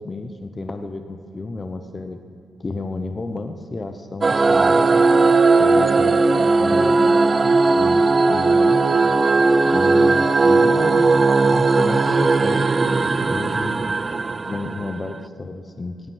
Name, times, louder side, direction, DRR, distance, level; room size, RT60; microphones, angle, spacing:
voice 1, 0.0-2.2 2.6-5.1 5.6-8.8 9.6-14.1 14.5-16.0, left 3 dB, 30° left, 7 dB, 0.8 m, -31 dB
sound 1, 4.2-15.1, right 3 dB, 30° right, 0.4 m, -17 dB
17.5 x 8.9 x 7.3 m, 2.3 s
cardioid pair, 110°, 0 cm